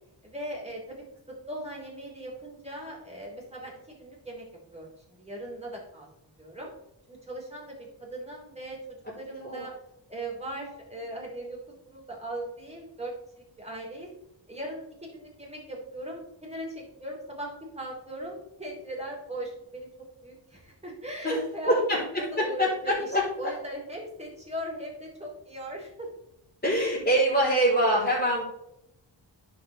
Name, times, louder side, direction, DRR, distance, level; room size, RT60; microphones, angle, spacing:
voice 1, 0.2-1.0 1.5-4.4 4.7-6.1 6.4-6.7 7.1-9.7 10.1-11.6 11.8-14.1 14.5-19.9 20.2-21.8 22.2-26.1, right 1 dB, 15° right, -3 dB, 3.4 m, -39 dB
voice 2, 9.3-9.6 21.2-21.4 21.7-23.2 26.6-28.4, equal, 20° left, -10 dB, 3.6 m, -24 dB
11.0 x 6.5 x 3.4 m, 0.84 s
wide cardioid pair, 85°, 45 cm